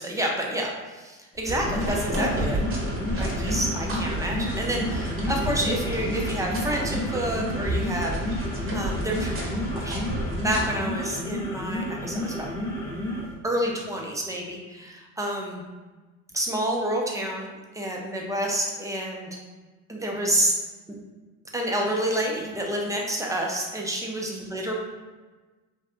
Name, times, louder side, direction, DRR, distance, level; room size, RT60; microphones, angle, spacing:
voice 1, 0.0-2.6 3.2-8.2 8.7-10.0 10.4-12.5 13.4-15.6 16.3-17.5 17.7-19.4 19.9-20.5 20.9-21.0 21.5-24.7, right 1 dB, 10° right, -1 dB, 0.3 m, -29 dB
sound 1, 1.3-13.3, left 1 dB, 5° left, 0.7 m, -32 dB
sound 2, 1.5-10.6, right 1 dB, 30° right, 0.7 m, -30 dB
2.6 x 2.2 x 2.4 m, 1.3 s
hypercardioid pair, 75°, 39 cm